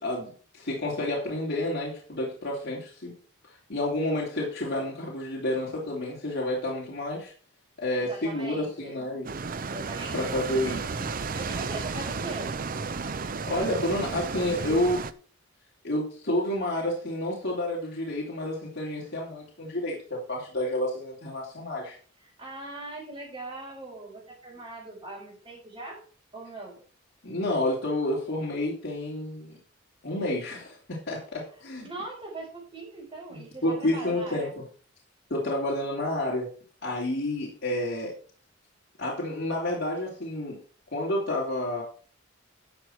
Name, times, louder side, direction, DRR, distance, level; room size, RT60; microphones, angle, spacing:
voice 1, 0.0-3.2 3.7-7.3 7.8-9.3 10.1-11.1 13.5-15.1 15.8-22.0 27.2-29.6 30.0-31.9 33.3-34.6 35.3-36.5 36.8-38.1 39.0-40.6 40.9-41.8, left 1 dB, 55° left, -4 dB, 3.0 m, -30 dB
voice 2, 8.0-9.0 9.7-10.3 11.3-12.5 22.2-26.0 26.3-26.7 31.8-34.5, right 2 dB, 25° right, -6 dB, 4.6 m, -40 dB
sound 1, 9.2-15.1, right 4 dB, 45° right, 0.6 m, -33 dB
12.5 x 6.5 x 4.5 m, 0.42 s
head